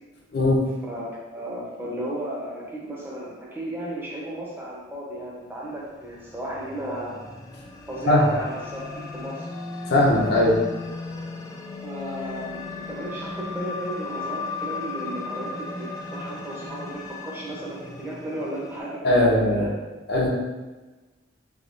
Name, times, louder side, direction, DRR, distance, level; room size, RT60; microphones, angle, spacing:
voice 1, 0.9-7.2 7.9-9.5 11.8-19.7, right 1 dB, 10° right, -5 dB, 0.7 m, -34 dB
sound 1, 5.7-18.8, left 3 dB, 20° left, 0.3 m, -36 dB
voice 2, 9.9-10.6 19.0-19.7 20.1-20.3, left 1 dB, 60° left, -4 dB, 0.7 m, -19 dB
3.5 x 2.8 x 2.5 m, 1.2 s
head